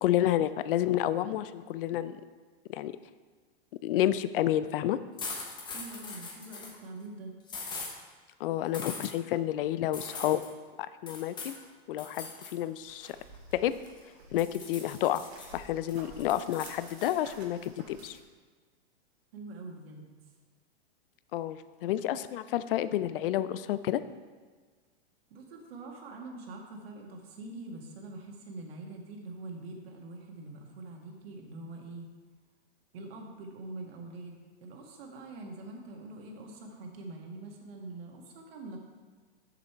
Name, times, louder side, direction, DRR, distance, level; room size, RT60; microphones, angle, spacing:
voice 1, 0.0-2.2 2.7-2.9 3.8-5.0 8.4-10.4 11.0-11.6 11.9-13.1 13.5-13.7 14.3-15.2 15.5-18.2 21.3-24.0, left 12 dB, 60° left, 14 dB, 0.5 m, -30 dB
sound 1, 5.2-6.8 7.5-7.9 8.7-9.1 9.9-10.5 11.1-11.6 12.0-12.5 12.9-14.0 14.4-15.5 15.9-17.1, left 4 dB, 15° left, 0.8 m, -41 dB
voice 2, 5.7-7.3 19.3-20.1 25.3-32.1 32.9-38.8, right 2 dB, 70° right, 1 dB, 1.7 m, -44 dB
sound 2, 12.8-18.2, right 3 dB, 90° right, 2.0 m, -53 dB
6.9 x 6.7 x 4.5 m, 1.4 s
supercardioid pair, 155°, 32 cm